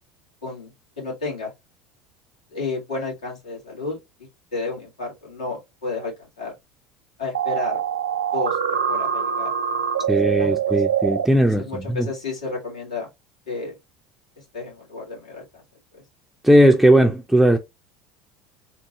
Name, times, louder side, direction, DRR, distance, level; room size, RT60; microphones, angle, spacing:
voice 1, 0.4-1.5 2.5-4.0 4.5-6.6 7.2-7.8 8.3-9.5 10.0-10.8 11.4-13.1 13.5-13.8 14.4-15.6 15.9-16.0, left 3 dB, 85° left, 2.1 m, -32 dB
sound 1, 7.3-11.3, right 8 dB, 90° right, 0.5 m, -24 dB
voice 2, 10.1-11.7 12.0-12.1 16.4-17.6, right 1 dB, 5° right, 0.5 m, -17 dB
3.6 x 2.6 x 2.9 m
hypercardioid pair, 75°, 3 cm